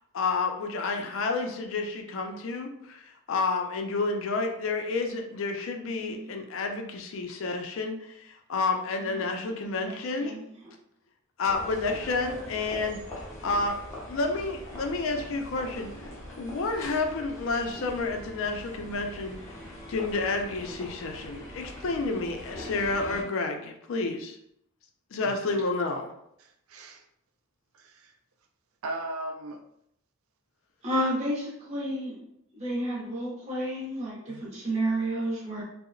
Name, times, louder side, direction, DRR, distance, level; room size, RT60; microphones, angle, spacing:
voice 1, 0.1-10.3 11.4-13.0 13.4-13.7 14.1-16.1 16.4-19.4 19.9-24.4 25.1-26.1, left 3 dB, 70° left, 4 dB, 0.4 m, -30 dB
voice 2, 9.1-9.9 10.2-10.4 30.8-32.2 32.5-35.6, right 1 dB, 30° right, -6 dB, 0.6 m, -31 dB
sound 1, 11.4-23.2, left 1 dB, 15° left, 0.5 m, -42 dB
voice 3, 26.4-27.0 27.7-28.1 28.8-29.6 34.3-34.4, right 2 dB, 80° right, 3 dB, 0.4 m, -38 dB
2.8 x 2.0 x 2.5 m, 0.75 s
head